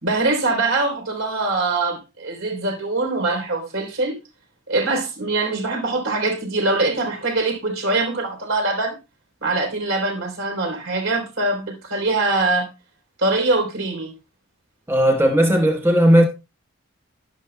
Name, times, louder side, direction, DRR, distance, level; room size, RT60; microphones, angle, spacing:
voice 1, 0.0-4.2 4.7-9.0 9.4-12.7 13.2-14.1, right 2 dB, 70° right, 3.4 m, -23 dB
voice 2, 14.9-16.2, equal, 10° right, 1.0 m, -16 dB
11.5 x 11.5 x 2.2 m
head